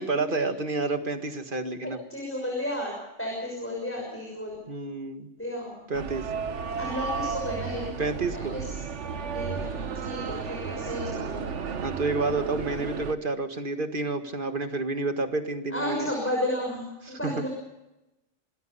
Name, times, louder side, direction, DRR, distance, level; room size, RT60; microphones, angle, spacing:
voice 1, 0.0-2.0 4.7-5.3 5.9-6.3 8.0-8.6 11.8-16.1 17.1-17.4, right 3 dB, 45° right, 7 dB, 1.9 m, -29 dB
voice 2, 2.1-4.6 5.4-5.9 6.8-8.7 9.3-11.8 15.7-17.5, left 1 dB, 10° left, -2 dB, 6.3 m, -33 dB
sound 1, 5.9-13.1, right 6 dB, 70° right, 1.4 m, -33 dB
26.5 x 19.0 x 5.6 m, 0.95 s
omnidirectional pair, 1.2 m